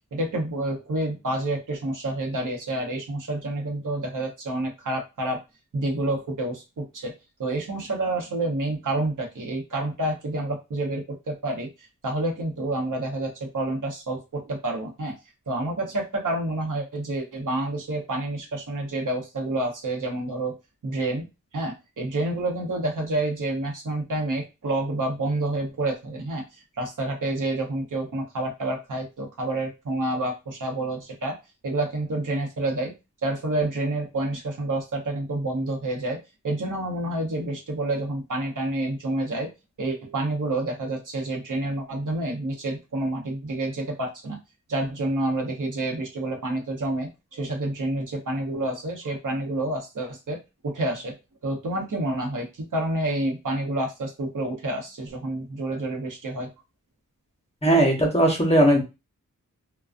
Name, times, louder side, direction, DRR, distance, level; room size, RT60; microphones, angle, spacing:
voice 1, 0.1-5.4 5.7-7.1 7.4-11.7 12.0-15.1 15.5-20.5 20.8-21.3 21.5-26.4 26.8-31.4 31.6-32.9 33.2-36.2 36.4-39.5 39.8-44.4 44.7-51.2 51.4-56.5, right 2 dB, 70° right, 0 dB, 0.8 m, -28 dB
voice 2, 57.6-58.8, right 1 dB, 20° left, 0 dB, 0.8 m, -18 dB
2.4 x 2.2 x 2.4 m, 0.26 s
wide cardioid pair, 95°, 32 cm